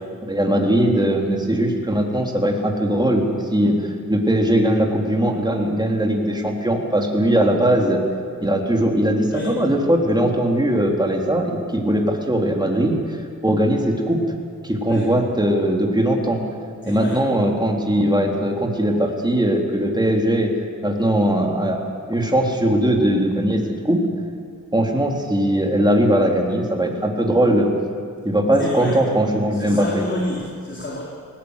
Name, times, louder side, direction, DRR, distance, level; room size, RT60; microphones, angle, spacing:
voice 1, 0.2-8.0 8.4-14.2 14.6-16.4 16.9-20.5 20.8-21.8 22.1-24.0 24.7-27.7 28.2-30.0, right 1 dB, 15° right, 1 dB, 3.5 m, -20 dB
voice 2, 16.8-17.2 28.6-29.0 29.5-31.0, left 1 dB, 35° left, -4 dB, 3.9 m, -29 dB
20.0 x 18.5 x 8.3 m, 2.2 s
cardioid pair, 70°, 33 cm